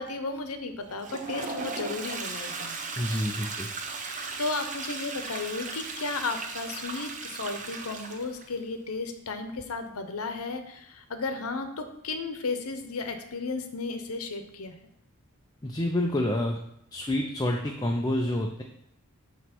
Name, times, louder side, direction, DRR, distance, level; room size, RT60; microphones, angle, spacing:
voice 1, 0.0-2.7 3.8-14.7, left 3 dB, 85° left, 7 dB, 0.8 m, -34 dB
Toilet flush, 0.9-8.5, right 4 dB, 35° right, 0.7 m, -37 dB
voice 2, 3.0-3.7 15.6-16.6 16.9-18.6, left 1 dB, 20° left, 1 dB, 0.5 m, -28 dB
7.9 x 3.1 x 5.9 m, 0.76 s
head